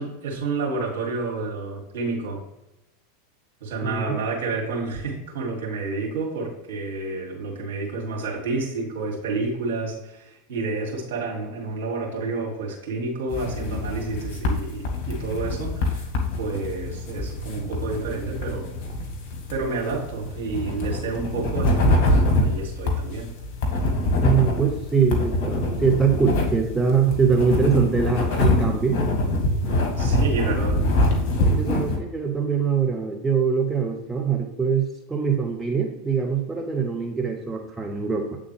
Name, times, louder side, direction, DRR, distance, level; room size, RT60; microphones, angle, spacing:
voice 1, 0.0-2.4 3.6-16.1 16.4-18.7 19.5-23.3 29.9-30.8, right 3 dB, 60° right, -2 dB, 2.3 m, -29 dB
sound 1, 13.3-32.0, left 1 dB, 50° left, 1.4 m, -24 dB
voice 2, 24.2-29.0 31.4-38.4, right 6 dB, 15° right, 2 dB, 0.8 m, -23 dB
8.1 x 3.6 x 3.3 m, 0.95 s
figure-of-eight pair, 85°, 0 cm